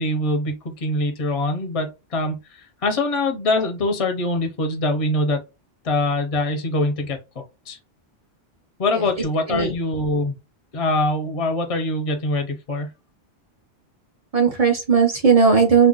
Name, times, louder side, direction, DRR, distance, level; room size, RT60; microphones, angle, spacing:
voice 1, 0.0-5.4 5.8-7.2 7.7-7.8 8.8-10.4 10.7-12.9, left 2 dB, 35° left, 0.6 m, -23 dB
voice 2, 9.0-9.7 14.3-15.9, right 5 dB, 40° right, 0.6 m, -17 dB
2.5 x 2.1 x 3.7 m
omnidirectional pair, 1.2 m